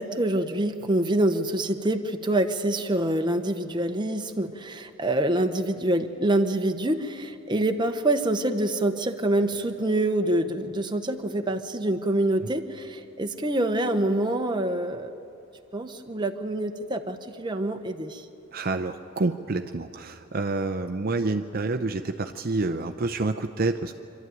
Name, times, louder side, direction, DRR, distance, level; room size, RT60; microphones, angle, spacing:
voice 1, 0.0-15.1 15.7-18.2, right 1 dB, 20° right, 6 dB, 0.9 m, -26 dB
voice 2, 18.5-23.9, right 3 dB, 45° right, 6 dB, 0.6 m, -28 dB
26.0 x 12.5 x 9.1 m, 2.7 s
head